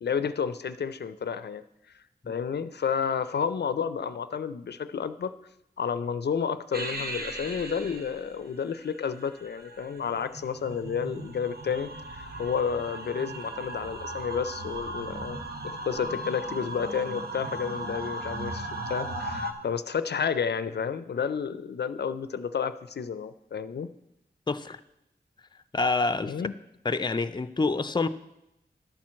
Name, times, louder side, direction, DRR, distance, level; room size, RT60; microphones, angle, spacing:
voice 1, 0.0-1.6 2.3-5.3 5.8-23.9 26.3-26.5, left 6 dB, 75° left, 13 dB, 0.5 m, -31 dB
sound 1, 6.7-19.5, right 1 dB, 65° right, 1.2 m, -37 dB
voice 2, 24.5-24.8 25.7-26.3 26.8-28.1, left 3 dB, 25° left, 12 dB, 0.5 m, -27 dB
11.5 x 4.4 x 7.4 m, 0.84 s
wide cardioid pair, 60°, 17 cm